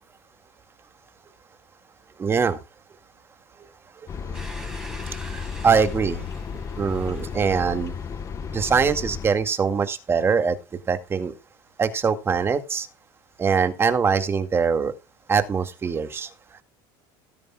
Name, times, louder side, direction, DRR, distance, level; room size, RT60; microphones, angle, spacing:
voice 1, 2.2-2.6 4.1-4.7 5.0-8.0 8.5-10.6 10.9-11.3 11.8-12.9 13.4-14.9 15.3-16.6, right 6 dB, 20° right, 8 dB, 2.1 m, -23 dB
sound 1, 4.1-9.3, left 6 dB, 30° left, 1.2 m, -33 dB
Domestic sounds home sounds, 4.3-9.0, right 1 dB, 5° right, 6.6 m, -45 dB
18.0 x 10.5 x 2.4 m, 0.28 s
supercardioid pair, 135°, 11 cm